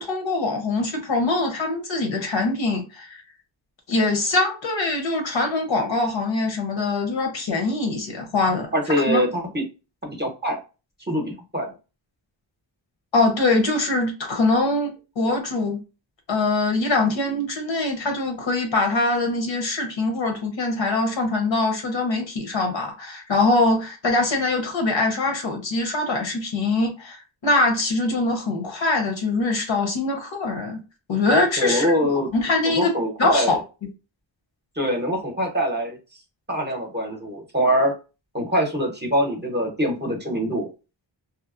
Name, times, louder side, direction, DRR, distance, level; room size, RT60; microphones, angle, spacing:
voice 1, 0.0-3.2 3.9-8.7 9.1-9.2 13.1-15.8 16.3-30.8 31.1-31.9 32.3-32.9 33.2-33.6, left 2 dB, 70° left, 0.9 m, -23 dB
voice 2, 8.7-9.6 10.0-10.6 11.1-11.7 31.6-32.3 32.7-33.6 34.8-36.0 36.5-37.9 38.3-40.7, equal, 25° right, 0.7 m, -23 dB
2.8 x 2.0 x 2.4 m
wide cardioid pair, 85°, 46 cm